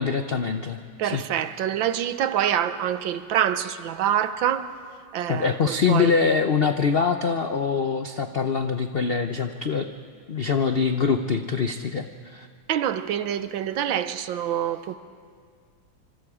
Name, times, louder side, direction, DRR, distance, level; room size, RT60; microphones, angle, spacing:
voice 1, 0.0-1.2 5.3-9.9 10.3-12.5, left 5 dB, 85° left, 0.5 m, -24 dB
voice 2, 1.0-4.7 5.1-6.1 12.7-15.0, right 10 dB, 85° right, 1.6 m, -26 dB
26.0 x 26.0 x 4.9 m
omnidirectional pair, 2.1 m